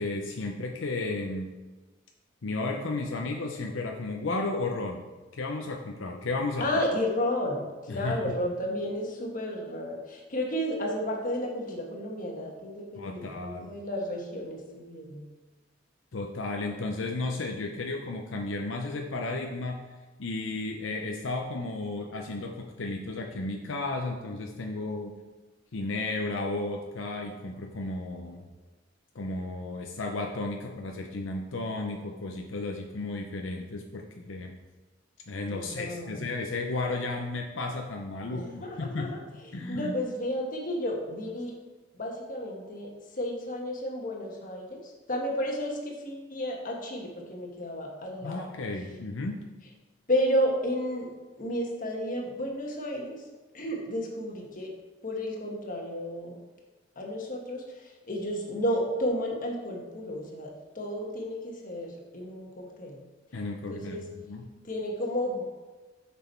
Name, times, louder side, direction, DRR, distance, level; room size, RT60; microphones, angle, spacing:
voice 1, 0.0-1.5 2.4-6.7 7.9-8.4 13.0-13.7 16.1-19.8 20.2-25.2 25.7-28.5 29.1-34.6 35.3-39.2 39.5-40.0 48.2-49.5 63.3-64.5, left 2 dB, 80° left, 2 dB, 0.7 m, -33 dB
voice 2, 6.6-15.2 35.5-36.3 38.3-39.2 39.5-41.5 41.9-42.9 43.2-48.4 50.1-51.1 51.4-53.2 53.5-54.7 55.0-56.4 57.0-63.0 63.7-64.1 64.6-65.4, equal, 45° left, 0 dB, 1.4 m, -32 dB
6.8 x 6.2 x 4.5 m, 1.2 s
head